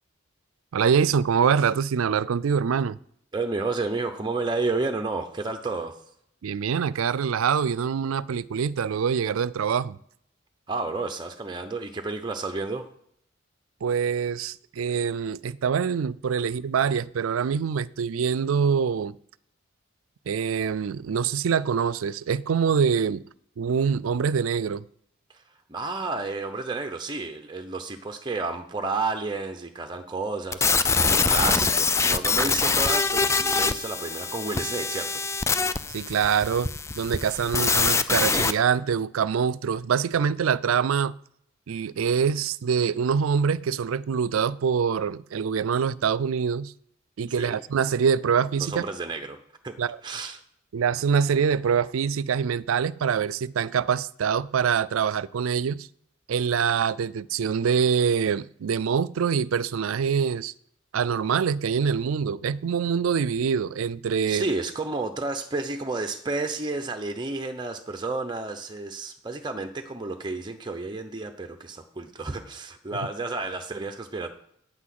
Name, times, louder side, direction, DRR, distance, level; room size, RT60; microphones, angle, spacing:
voice 1, 0.7-3.0 6.4-10.0 13.8-19.2 20.3-23.2 23.6-24.8 35.9-41.1 41.7-46.7 47.2-48.8 49.8-50.0 50.7-55.9 56.3-60.5 60.9-64.4, right 6 dB, 85° right, 0.4 m, -25 dB
voice 2, 3.3-6.0 10.7-12.9 25.3-25.4 25.7-35.2 47.4-47.6 48.6-49.4 49.6-49.8 50.0-50.4 64.3-74.3, right 3 dB, 20° right, 0.7 m, -31 dB
sound 1, 30.5-38.5, left 4 dB, 15° left, 0.4 m, -24 dB
9.0 x 6.1 x 7.6 m
head